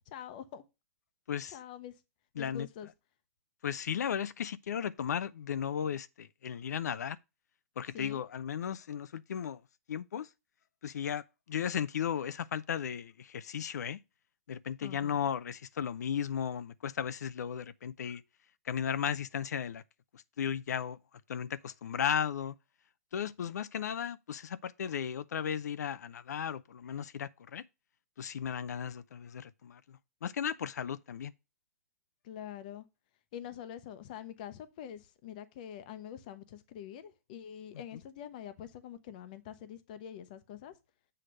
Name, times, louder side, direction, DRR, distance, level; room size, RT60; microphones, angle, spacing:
voice 1, 0.1-0.6 1.5-1.9 2.4-2.9 7.9-8.3 14.8-15.2 32.2-32.9 33.3-40.7, left 10 dB, 30° left, 0.7 m, -45 dB
voice 2, 2.4-2.7 3.6-7.2 7.8-9.6 9.9-10.3 10.8-14.0 14.5-18.2 18.6-19.8 20.1-21.0 21.3-22.5 23.1-27.6 28.2-31.3, left 8 dB, 85° left, 0.4 m, -35 dB
7.7 x 3.3 x 6.3 m
hypercardioid pair, 170°, 9 cm